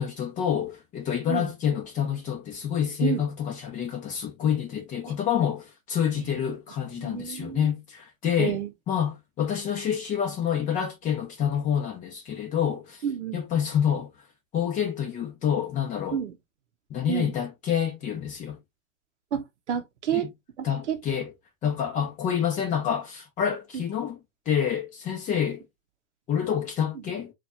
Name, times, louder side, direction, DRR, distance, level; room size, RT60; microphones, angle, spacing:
voice 1, 0.0-13.0 13.3-14.1 14.5-16.2 16.9-18.6 20.1-20.3 20.6-21.3 21.6-24.2 24.5-25.6 26.3-27.3, left 8 dB, 20° left, 1.2 m, -28 dB
voice 2, 7.0-7.7 8.4-8.7 13.0-13.4 16.1-16.3 17.1-17.3 19.3-20.3 20.6-21.0, right 8 dB, 60° right, 1.0 m, -29 dB
4.4 x 2.7 x 2.6 m
hypercardioid pair, 130°, 40 cm